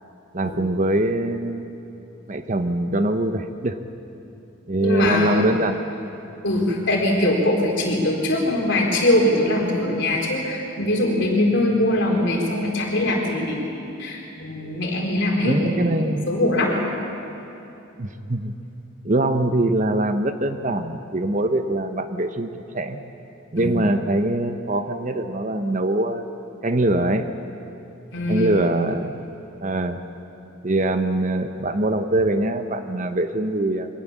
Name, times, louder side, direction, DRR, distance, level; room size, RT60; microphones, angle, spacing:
voice 1, 0.3-1.7 2.3-3.7 4.7-6.0 15.4-16.3 18.0-18.5 19.0-23.0 23.5-26.3 26.6-27.3 28.3-29.2 29.6-30.0 30.6-33.9, right 1 dB, 35° right, 8 dB, 0.9 m, -23 dB
voice 2, 4.8-5.5 6.4-16.8 23.6-23.7 28.1-28.6, left 1 dB, 55° left, -1 dB, 4.2 m, -22 dB
23.5 x 18.0 x 7.4 m, 2.9 s
head